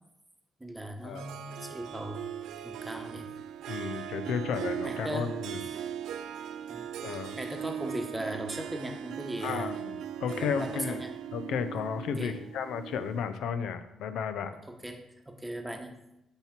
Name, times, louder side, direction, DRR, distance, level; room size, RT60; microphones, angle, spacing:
voice 1, 0.6-2.2 2.6-3.3 4.8-5.4 6.7-6.9 7.4-9.8 10.3-11.2 12.2-12.4 14.7-16.0, right 1 dB, 10° right, 4 dB, 1.0 m, -38 dB
Harp, 1.2-13.4, right 9 dB, 80° right, 0.4 m, -39 dB
voice 2, 3.7-5.6 7.0-7.4 9.4-11.0 11.3-14.5, left 7 dB, 80° left, 10 dB, 0.6 m, -33 dB
8.7 x 3.0 x 5.8 m, 0.89 s
cardioid pair, 90°, 0 cm